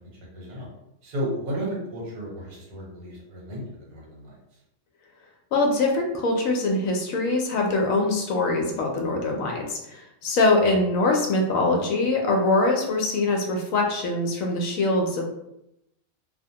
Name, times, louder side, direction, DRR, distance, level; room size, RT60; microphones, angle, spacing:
voice 1, 0.3-0.7 1.0-3.6 3.9-4.3, equal, 80° right, -4 dB, 1.4 m, -33 dB
voice 2, 5.5-15.2, left 2 dB, 70° left, 1 dB, 0.9 m, -23 dB
2.8 x 2.1 x 2.7 m, 0.83 s
omnidirectional pair, 1.5 m